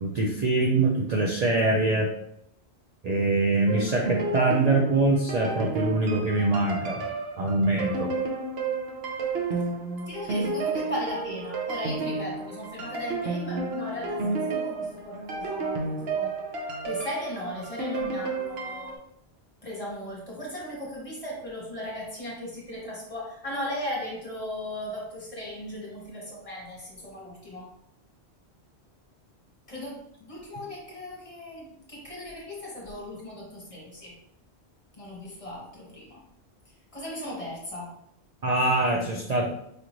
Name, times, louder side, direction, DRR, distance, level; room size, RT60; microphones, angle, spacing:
voice 1, 0.0-2.1 3.0-7.0 7.4-8.1 38.4-39.5, right 2 dB, 50° right, -1 dB, 0.5 m, -24 dB
sound 1, 3.7-19.0, right 3 dB, 65° right, 0.9 m, -31 dB
voice 2, 10.1-16.3 16.8-19.0 19.6-27.7 29.7-34.1 35.0-36.2 36.9-37.9, left 1 dB, 30° left, -4 dB, 1.3 m, -37 dB
5.0 x 2.5 x 3.0 m, 0.77 s
omnidirectional pair, 1.1 m